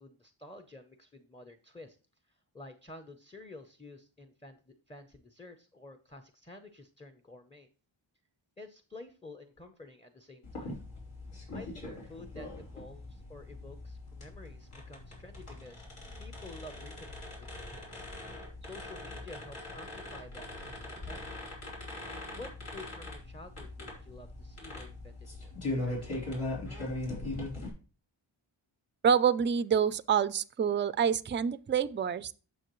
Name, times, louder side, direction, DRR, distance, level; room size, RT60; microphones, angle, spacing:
voice 1, 0.0-2.0 2.3-7.7 8.6-10.8 11.5-15.8 16.2-18.0 18.6-21.4 22.3-25.5 25.8-26.3, left 2 dB, 10° left, 0.6 m, -50 dB
sound 1, 10.4-27.7, left 2 dB, 80° left, 3.9 m, -41 dB
voice 2, 29.0-32.3, right 7 dB, 25° right, 0.3 m, -27 dB
9.2 x 7.3 x 3.0 m
wide cardioid pair, 90°, 50 cm